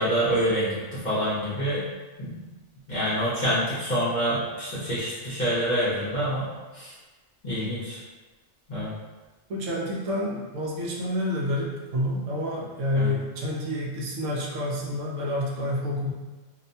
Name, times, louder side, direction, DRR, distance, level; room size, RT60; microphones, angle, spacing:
voice 1, 0.0-1.8 2.2-2.3 2.9-6.5 6.7-6.9 7.4-8.0 8.7-8.9 12.9-13.1, equal, 45° left, -10 dB, 0.6 m, -26 dB
voice 2, 9.5-16.1, left 1 dB, 70° right, -3 dB, 0.9 m, -28 dB
2.6 x 2.1 x 2.6 m, 1.2 s
omnidirectional pair, 1.4 m